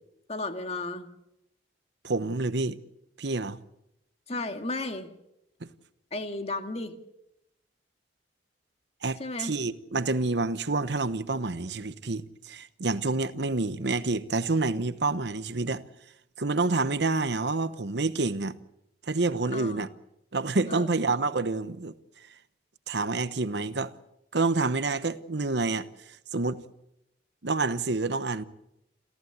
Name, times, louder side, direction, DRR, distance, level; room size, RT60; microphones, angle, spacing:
voice 1, 0.3-1.1 4.3-5.1 6.1-6.9 9.2-9.5 19.5-19.9 20.7-20.9, left 2 dB, 35° left, 2.1 m, -34 dB
voice 2, 2.0-2.8 3.2-3.6 5.6-5.7 9.0-15.8 16.4-18.6 19.0-19.9 20.3-21.9 22.9-23.9 24.3-25.9 26.3-26.6 27.4-28.4, right 3 dB, 70° right, 1.0 m, -28 dB
28.5 x 15.0 x 8.2 m
head